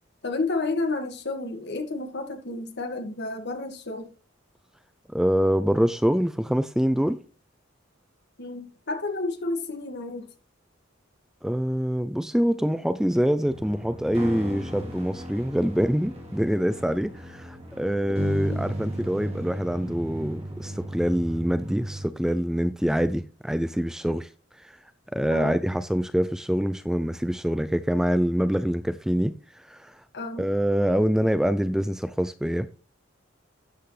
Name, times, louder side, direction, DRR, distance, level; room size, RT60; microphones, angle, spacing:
voice 1, 0.2-4.1 8.4-10.3 18.5-18.7 25.3-25.6 30.1-30.4, left 3 dB, 60° left, 2.0 m, -31 dB
voice 2, 5.1-7.2 11.4-24.3 24.6-24.7 25.1-29.3 29.7-29.9 30.4-32.7, equal, 5° right, 0.4 m, -25 dB
sound 1, 13.5-22.1, right 1 dB, 30° right, 3.3 m, -35 dB
12.0 x 8.0 x 3.3 m
head